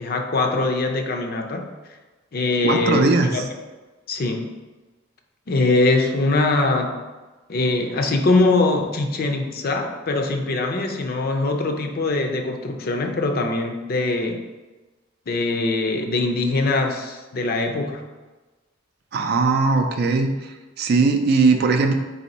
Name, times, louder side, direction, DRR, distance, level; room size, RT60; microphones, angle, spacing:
voice 1, 0.0-1.7 2.3-3.5 4.1-4.5 5.5-7.0 7.5-14.4 15.3-18.0, left 2 dB, 50° left, 4 dB, 0.5 m, -22 dB
voice 2, 2.6-3.4 19.1-20.3 20.8-21.9, right 4 dB, 50° right, 5 dB, 0.4 m, -19 dB
4.2 x 2.7 x 4.1 m, 1.2 s
head